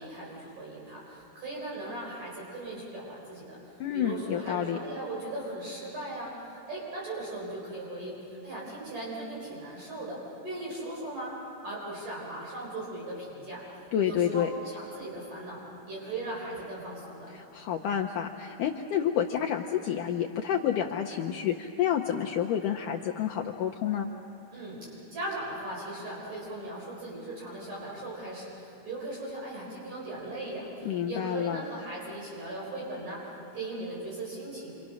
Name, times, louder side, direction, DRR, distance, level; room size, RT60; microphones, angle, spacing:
voice 1, 0.0-3.6 3.9-11.4 11.6-13.6 14.0-17.3 24.5-33.3 33.5-34.7, right 1 dB, 50° right, -5 dB, 5.9 m, -38 dB
voice 2, 3.8-4.8 13.9-14.5 17.3-24.1 30.9-31.6, left 9 dB, 80° left, 1 dB, 1.8 m, -29 dB
28.5 x 26.0 x 6.4 m, 2.7 s
omnidirectional pair, 4.7 m